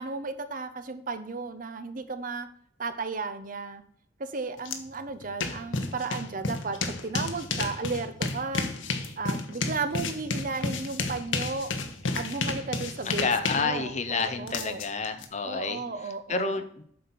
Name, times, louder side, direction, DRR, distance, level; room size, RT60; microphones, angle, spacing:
voice 1, 0.0-2.5 2.8-3.8 4.2-8.7 9.2-11.7 12.1-14.8 15.4-16.6, right 4 dB, 45° right, 10 dB, 0.7 m, -34 dB
sound 1, 4.7-4.8 5.1-15.3, left 3 dB, 85° left, 1.0 m, -32 dB
voice 2, 13.0-15.8 16.3-16.8, left 4 dB, 35° left, 8 dB, 0.7 m, -29 dB
7.7 x 4.3 x 6.8 m, 0.62 s
head